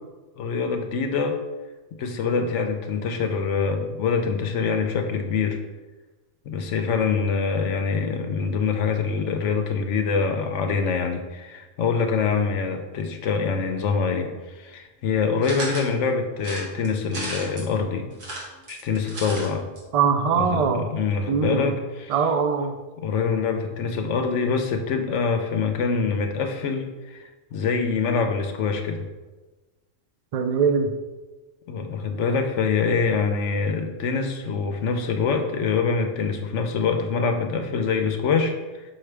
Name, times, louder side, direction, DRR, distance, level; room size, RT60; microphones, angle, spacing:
voice 1, 0.4-1.4 1.9-5.6 6.5-18.1 18.7-19.6 20.4-22.1 23.0-29.1 31.7-38.8, left 5 dB, 75° left, 5 dB, 0.9 m, -25 dB
sound 1, 15.4-15.9 16.4-17.7 18.1-19.5 19.8-19.9 20.1-20.2, right 1 dB, 85° right, 1.6 m, -34 dB
voice 2, 19.9-20.8 21.3-21.7 22.1-22.7 30.3-30.9, right 6 dB, 65° right, 7 dB, 0.3 m, -22 dB
5.9 x 4.8 x 3.3 m, 1.2 s
omnidirectional pair, 1.3 m